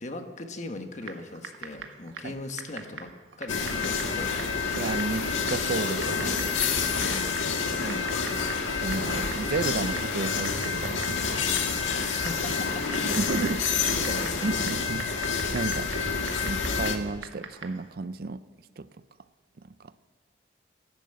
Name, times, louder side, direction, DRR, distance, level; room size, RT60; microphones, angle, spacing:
voice 1, 0.0-3.1 3.4-4.3 7.1-7.5 7.8-8.1 11.8-14.5, left 2 dB, 40° left, 6 dB, 1.4 m, -39 dB
Typing, 1.0-17.9, right 5 dB, 80° right, 1.5 m, -45 dB
sound 1, 3.5-17.0, left 5 dB, 90° left, 1.7 m, -28 dB
voice 2, 4.7-6.5 6.8-7.2 7.8-8.2 8.8-11.5 13.1-13.6 14.4-15.1 15.5-15.9 16.4-18.4 18.8-18.9, right 3 dB, 50° right, 15 dB, 0.4 m, -32 dB
15.5 x 11.5 x 7.9 m, 1.4 s
head